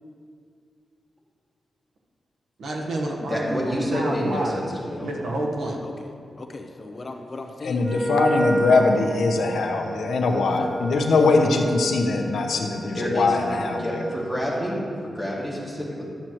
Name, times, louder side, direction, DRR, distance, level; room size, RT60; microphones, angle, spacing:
voice 1, 2.6-4.6 5.0-5.8, right 1 dB, 85° right, 0 dB, 1.2 m, -29 dB
voice 2, 3.2-5.1 12.9-16.0, equal, 5° right, -5 dB, 2.1 m, -28 dB
voice 3, 5.8-8.1 8.6-9.2 10.6-10.9 11.3-11.5, left 2 dB, 40° left, 4 dB, 0.6 m, -38 dB
voice 4, 7.6-14.0, left 3 dB, 85° left, 3 dB, 0.8 m, -22 dB
Wind instrument woodwind instrument, 7.8-14.5, right 1 dB, 20° right, 0.5 m, -31 dB
11.5 x 7.6 x 3.0 m, 2.4 s
wide cardioid pair, 105°, 0 cm